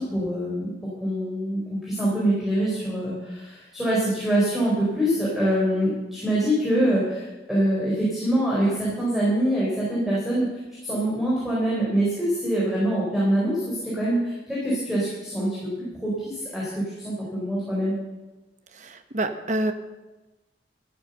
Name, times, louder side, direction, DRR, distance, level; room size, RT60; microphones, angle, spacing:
voice 1, 0.0-10.5 10.8-18.0, right 1 dB, ahead, -7 dB, 4.1 m, -25 dB
voice 2, 18.7-19.7, right 1 dB, 40° right, 8 dB, 1.0 m, -27 dB
13.0 x 11.5 x 6.7 m, 1.1 s
head